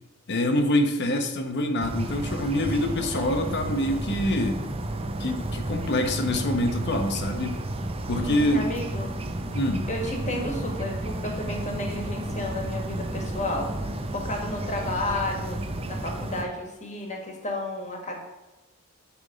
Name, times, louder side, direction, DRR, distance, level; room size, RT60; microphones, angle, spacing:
voice 1, 0.3-4.6 5.2-7.6 8.1-8.7 9.5-9.8, left 1 dB, 50° left, 5 dB, 0.9 m, -25 dB
sound 1, 1.8-16.4, right 1 dB, 25° right, 0.5 m, -32 dB
voice 2, 8.1-9.1 9.9-15.6 15.9-18.2, left 1 dB, 30° left, 1 dB, 1.5 m, -32 dB
9.8 x 3.6 x 5.1 m, 1.1 s
head